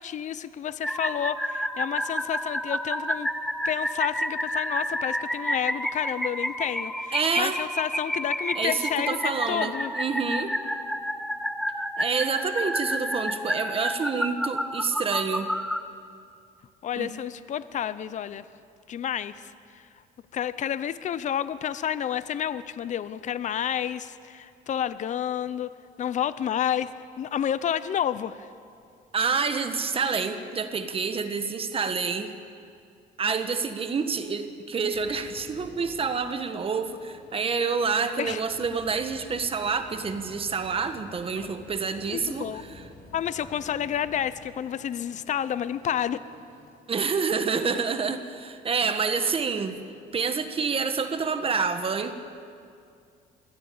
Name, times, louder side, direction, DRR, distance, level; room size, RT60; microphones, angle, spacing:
voice 1, 0.0-3.3 3.6-9.9 16.8-18.4 18.9-19.4 20.3-26.9 27.2-28.5 38.2-38.4 42.1-42.6 43.1-46.2, left 9 dB, 45° left, 15 dB, 0.7 m, -30 dB
sound 1, 0.8-15.8, equal, ahead, 0.9 m, -30 dB
voice 2, 7.1-7.6 8.5-10.5 12.0-15.5 17.0-17.1 29.1-32.3 33.2-42.7 46.9-49.8 50.1-52.1, right 5 dB, 35° right, 8 dB, 1.4 m, -28 dB
sound 2, 34.9-46.7, left 2 dB, 65° left, 5.3 m, -50 dB
21.5 x 15.5 x 8.7 m, 2.3 s
cardioid pair, 110°, 17 cm